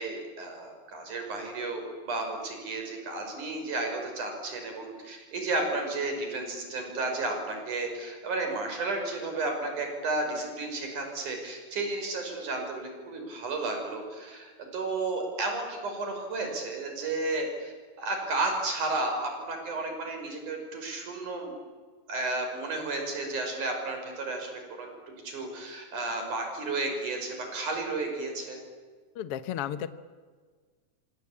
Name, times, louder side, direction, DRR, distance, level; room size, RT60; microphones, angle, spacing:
voice 1, 0.0-21.5 22.1-24.9 25.2-28.6, right 2 dB, 85° right, 4 dB, 6.8 m, -33 dB
voice 2, 29.2-30.0, left 10 dB, 60° left, 12 dB, 1.8 m, -33 dB
27.0 x 25.5 x 8.5 m, 1.5 s
omnidirectional pair, 3.4 m